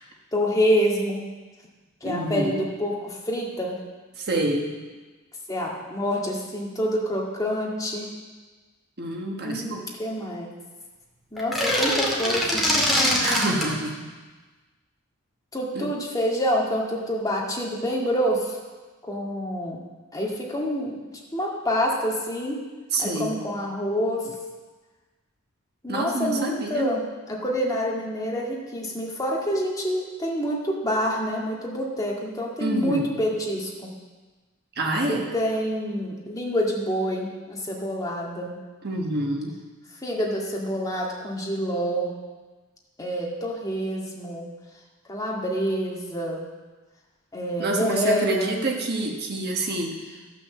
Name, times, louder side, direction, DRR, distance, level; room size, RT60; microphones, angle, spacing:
voice 1, 0.3-1.2 2.0-3.8 5.5-8.1 9.4-10.5 11.3-12.7 15.5-18.6 19.0-19.8 20.1-21.0 21.3-22.6 23.0-24.3 25.8-27.0 27.3-33.7 35.1-38.6 40.0-42.1 43.0-44.5 45.1-46.4 47.3-48.6, equal, 15° left, -3 dB, 2.0 m, -27 dB
voice 2, 2.0-2.7 4.2-4.7 9.0-9.9 13.2-14.0 15.7-15.9 22.9-23.4 25.9-27.0 32.6-33.2 34.8-35.3 38.8-39.5 47.6-50.2, right 1 dB, 50° right, 1 dB, 1.4 m, -27 dB
sound 1, 11.4-13.7, left 1 dB, ahead, 2.3 m, -23 dB
13.0 x 6.2 x 7.3 m, 1.3 s
head